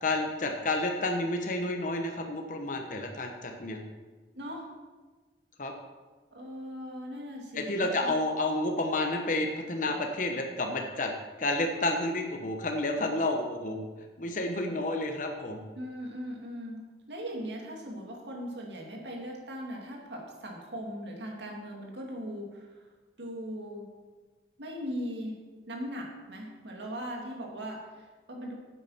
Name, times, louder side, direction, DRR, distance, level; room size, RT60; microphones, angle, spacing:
voice 1, 0.0-3.8 5.6-5.7 7.5-11.1 11.4-13.8 14.2-15.6, left 2 dB, 45° left, 3 dB, 1.0 m, -30 dB
voice 2, 4.3-4.7 6.3-8.1 15.7-16.8 17.1-22.9 23.2-23.9 24.6-25.4 25.7-28.5, equal, 75° right, 0 dB, 2.3 m, -39 dB
9.8 x 8.4 x 5.7 m, 1.3 s
head